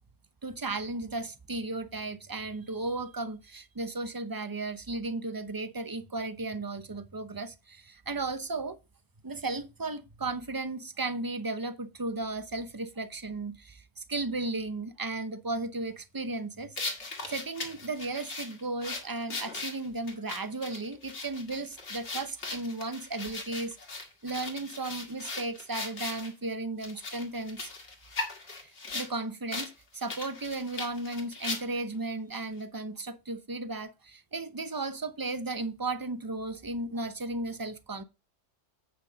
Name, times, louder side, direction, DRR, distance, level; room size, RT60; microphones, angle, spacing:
voice 1, 0.4-8.8 9.2-16.8 17.3-27.7 28.6-38.0, right 2 dB, 20° right, 0.7 m, -35 dB
sound 1, 16.8-26.3 26.8-29.1 29.5-29.7 30.0-31.9, left 3 dB, 65° left, 2.4 m, -38 dB
9.2 x 6.2 x 4.0 m
omnidirectional pair, 1.3 m